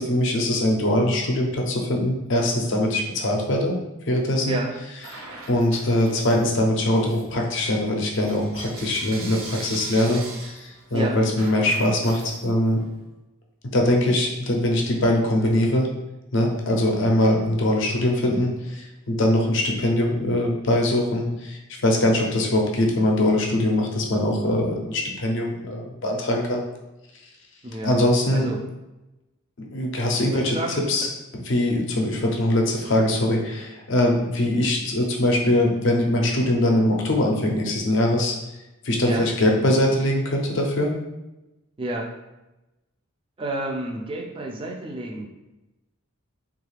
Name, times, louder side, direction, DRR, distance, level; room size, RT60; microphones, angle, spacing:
voice 1, 0.0-3.8 4.1-4.6 5.1-12.8 13.7-15.9 16.3-26.6 27.8-28.5 29.6-30.6 30.9-31.1 31.5-38.3 38.8-40.9, left 1 dB, 55° left, 0 dB, 0.5 m, -22 dB
Bell / Coin (dropping), 5.0-6.5 6.9-12.9, right 3 dB, 70° right, 0.6 m, -41 dB
voice 2, 27.6-28.6 30.1-30.8 39.0-39.3 41.8-42.1 43.4-45.2, right 1 dB, 25° right, 1 dB, 0.3 m, -30 dB
3.1 x 2.4 x 3.2 m, 0.98 s
head